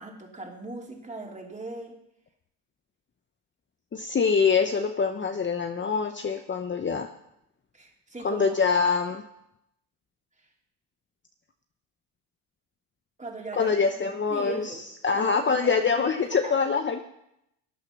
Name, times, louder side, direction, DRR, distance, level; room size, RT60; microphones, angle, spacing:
voice 1, 0.0-2.0 7.7-8.4 13.2-13.7 14.1-14.8 15.1-16.5, right 2 dB, 15° right, 1 dB, 3.3 m, -39 dB
voice 2, 3.9-7.1 8.2-9.2 13.5-14.8 15.0-17.0, left 5 dB, 25° left, 6 dB, 0.9 m, -24 dB
13.5 x 8.6 x 6.2 m, 0.80 s
supercardioid pair, 75°, 43 cm